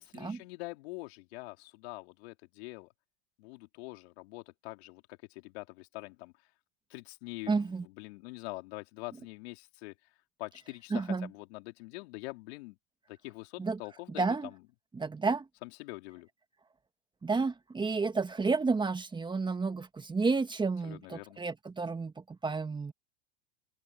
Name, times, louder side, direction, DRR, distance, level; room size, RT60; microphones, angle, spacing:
voice 1, 0.0-2.9 3.4-6.3 6.9-9.9 10.4-12.8 13.1-14.6 15.6-16.3 20.8-21.4, left 23 dB, 65° left, 3.9 m, -44 dB
voice 2, 7.5-7.8 10.9-11.3 13.6-13.8 14.2-14.5 14.9-15.4 17.2-22.9, right 4 dB, 15° right, 1.6 m, -31 dB
open air
hypercardioid pair, 115°, 34 cm